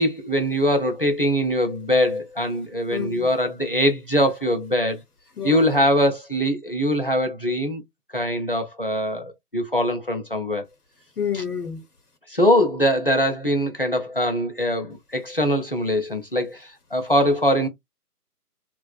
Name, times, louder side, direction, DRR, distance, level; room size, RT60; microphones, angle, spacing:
voice 1, 0.0-5.0 5.4-7.8 8.1-10.6 11.3-11.4 12.3-17.7, equal, 35° left, 0.6 m, -22 dB
voice 2, 2.9-3.3 5.4-5.7 11.2-11.8, left 8 dB, 70° left, 1.0 m, -28 dB
3.6 x 2.4 x 2.3 m
figure-of-eight pair, 170°, 48 cm